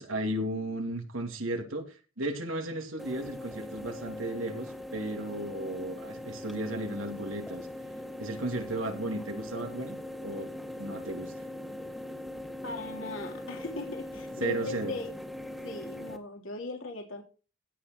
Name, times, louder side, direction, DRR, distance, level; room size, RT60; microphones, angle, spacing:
voice 1, 0.0-7.7 8.2-10.5 10.8-11.4 14.4-15.0, right 1 dB, 85° right, 3 dB, 3.1 m, -35 dB
sound 1, 3.0-16.2, left 1 dB, ahead, 1.9 m, -41 dB
voice 2, 12.6-15.1 15.6-17.2, left 2 dB, 75° left, 2 dB, 3.3 m, -38 dB
17.0 x 6.6 x 4.7 m, 0.35 s
head